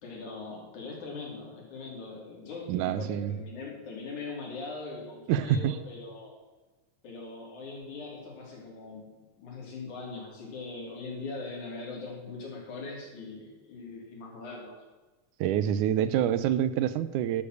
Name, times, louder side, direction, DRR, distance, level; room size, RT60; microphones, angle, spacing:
voice 1, 0.0-6.4 7.0-14.8, left 3 dB, 70° left, -2 dB, 4.3 m, -41 dB
voice 2, 2.7-3.3 5.3-5.8 15.4-17.4, right 10 dB, 85° right, 13 dB, 2.1 m, -26 dB
12.0 x 7.2 x 6.5 m, 1.2 s
omnidirectional pair, 3.6 m